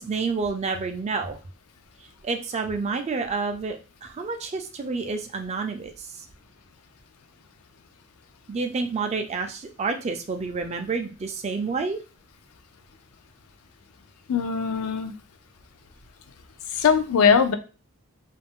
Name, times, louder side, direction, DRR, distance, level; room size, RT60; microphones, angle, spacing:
voice 1, 0.0-1.4 2.2-6.1 8.5-12.0, right 4 dB, 30° right, 6 dB, 0.3 m, -29 dB
voice 2, 14.3-15.1 16.7-17.5, left 6 dB, 75° left, 10 dB, 0.4 m, -20 dB
2.4 x 2.0 x 3.5 m, 0.33 s
head